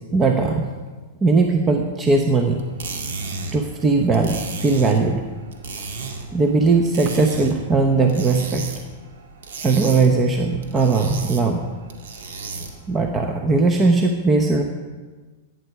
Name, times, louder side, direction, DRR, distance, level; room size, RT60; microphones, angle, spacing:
voice 1, 0.1-0.7 1.2-2.6 3.5-5.2 6.3-8.7 9.6-11.6 12.9-14.6, right 3 dB, 20° right, 3 dB, 1.0 m, -19 dB
sound 1, 2.6-12.9, right 4 dB, 80° right, 1.9 m, -34 dB
15.0 x 9.4 x 4.8 m, 1.4 s
hypercardioid pair, 130°, 0 cm